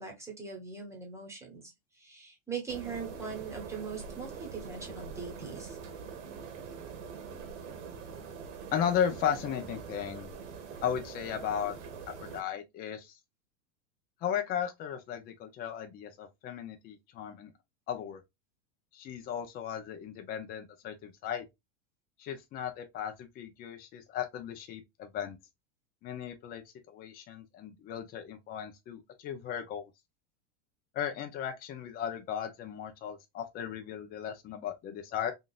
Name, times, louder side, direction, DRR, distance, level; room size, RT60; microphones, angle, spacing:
voice 1, 0.0-5.8, right 5 dB, 5° right, 1.2 m, -41 dB
sound 1, 2.7-12.4, right 6 dB, 70° right, 1.1 m, -44 dB
voice 2, 8.7-10.3 10.8-11.7 12.2-13.1 14.2-17.5 17.9-18.2 18.9-21.4 22.2-25.4 26.0-26.6 26.9-29.9 30.9-35.3, left 9 dB, 25° left, 0.5 m, -36 dB
3.7 x 2.5 x 2.3 m
supercardioid pair, 140°, 38 cm